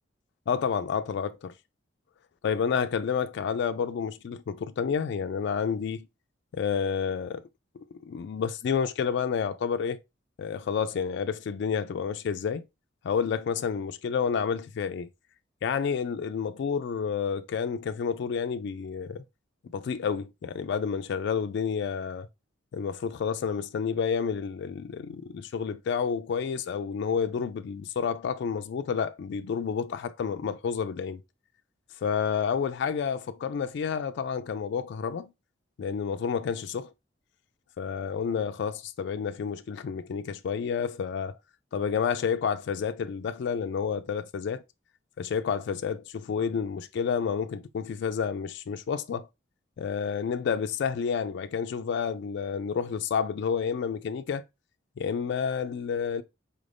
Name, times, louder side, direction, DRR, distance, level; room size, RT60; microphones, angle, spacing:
voice 1, 0.5-1.5 2.4-6.1 6.5-7.4 7.7-10.0 10.4-12.6 13.0-15.1 15.6-19.2 19.7-22.3 22.7-31.2 32.0-35.3 35.8-36.9 37.8-41.3 41.7-44.6 45.2-49.3 49.8-54.4 55.0-56.2, left 6 dB, 65° left, 0.3 m, -30 dB
4.3 x 2.5 x 3.3 m
head